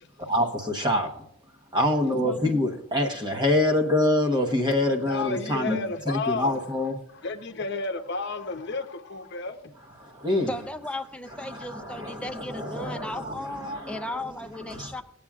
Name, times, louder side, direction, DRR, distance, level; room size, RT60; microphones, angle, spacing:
voice 1, 0.3-1.2 1.7-5.8 6.1-6.9 10.0-10.5 11.5-14.0 14.7-15.0, left 1 dB, 20° right, 1.1 m, -26 dB
voice 2, 5.0-9.7, left 3 dB, 50° left, 0.9 m, -32 dB
voice 3, 10.5-15.0, left 1 dB, 5° left, 0.5 m, -36 dB
18.0 x 8.6 x 2.4 m
head